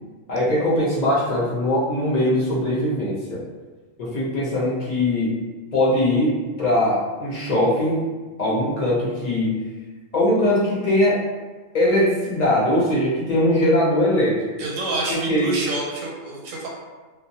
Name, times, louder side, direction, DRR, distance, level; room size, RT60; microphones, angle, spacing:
voice 1, 0.3-3.4 4.0-5.4 5.7-8.1 8.4-9.6 10.1-11.2 11.7-14.4 15.1-15.5, left 1 dB, 45° left, -6 dB, 0.6 m, -21 dB
voice 2, 14.6-16.7, right 2 dB, 85° right, -2 dB, 1.0 m, -28 dB
2.2 x 2.1 x 2.7 m, 1.3 s
omnidirectional pair, 1.4 m